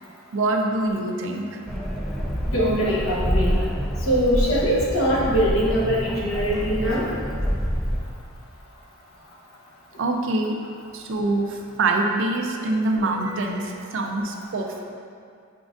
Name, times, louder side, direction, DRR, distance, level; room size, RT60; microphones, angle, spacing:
voice 1, 0.3-1.6 10.0-10.6 10.9-14.8, right 2 dB, 65° right, 2 dB, 0.4 m, -25 dB
sound 1, 1.7-8.0, equal, ahead, 0.3 m, -27 dB
voice 2, 2.5-3.6 4.1-7.1 13.2-13.3, equal, 80° left, -5 dB, 0.9 m, -22 dB
5.0 x 3.7 x 2.4 m, 2.2 s
head